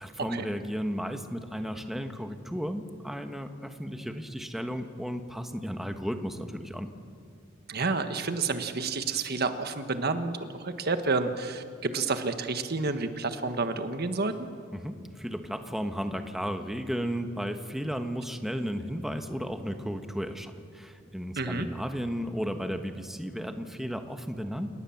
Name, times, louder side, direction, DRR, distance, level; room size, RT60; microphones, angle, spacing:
voice 1, 0.0-6.9 14.7-24.7, equal, ahead, 6 dB, 1.3 m, -34 dB
voice 2, 7.7-14.5 21.4-21.7, right 3 dB, 50° right, 8 dB, 1.4 m, -30 dB
29.0 x 18.5 x 7.3 m, 2.3 s
head